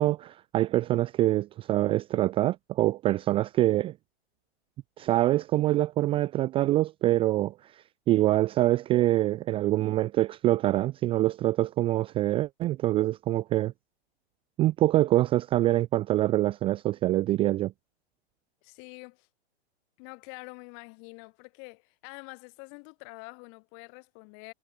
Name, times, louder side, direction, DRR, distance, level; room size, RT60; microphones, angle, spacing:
voice 1, 0.0-3.9 5.0-13.7 14.6-17.7, right 15 dB, 15° right, 0.5 m, -25 dB
voice 2, 18.6-19.3 20.0-24.5, left 40 dB or more, 40° left, 6.0 m, -46 dB
hypercardioid pair, 140°, 33 cm